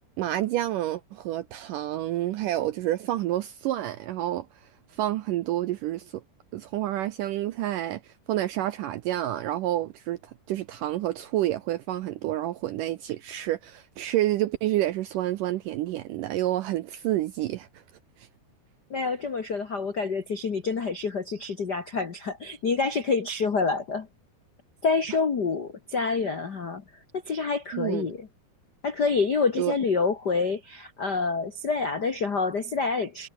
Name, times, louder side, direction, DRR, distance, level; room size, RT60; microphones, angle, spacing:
voice 1, 0.2-6.2 6.5-17.8 18.2-18.3 27.7-28.1 29.6-29.7, right 14 dB, 80° right, 2.0 m, -29 dB
voice 2, 18.9-24.1 24.8-26.8 27.1-28.3 28.8-33.3, left 4 dB, 70° left, 1.0 m, -27 dB
omnidirectional pair, 4.6 m